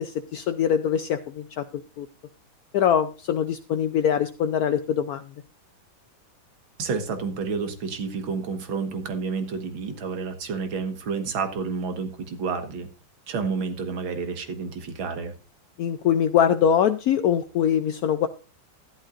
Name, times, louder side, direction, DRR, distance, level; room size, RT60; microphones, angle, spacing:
voice 1, 0.0-2.1 2.7-5.2 15.8-18.3, left 8 dB, 75° left, 10 dB, 0.8 m, -23 dB
voice 2, 6.8-12.9 13.3-15.3, right 5 dB, 75° right, 7 dB, 2.2 m, -30 dB
12.5 x 11.5 x 2.5 m, 0.34 s
omnidirectional pair, 2.2 m